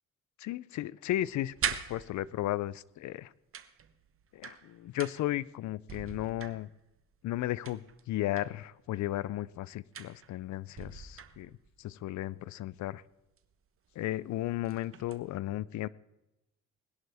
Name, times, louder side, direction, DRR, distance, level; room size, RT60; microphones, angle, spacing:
voice 1, 0.4-3.3 4.3-6.7 7.2-11.5 11.8-13.0 14.0-15.9, left 14 dB, 70° left, 21 dB, 0.5 m, -35 dB
sound 1, 1.3-2.6 3.5-5.4 5.8-7.0 7.6-8.6 9.9-10.4 10.8-11.8 13.4-13.5 13.9-14.1 14.5-15.3, right 8 dB, 45° right, 1.0 m, -41 dB
20.5 x 11.0 x 3.5 m, 0.94 s
cardioid pair, 90°, 30 cm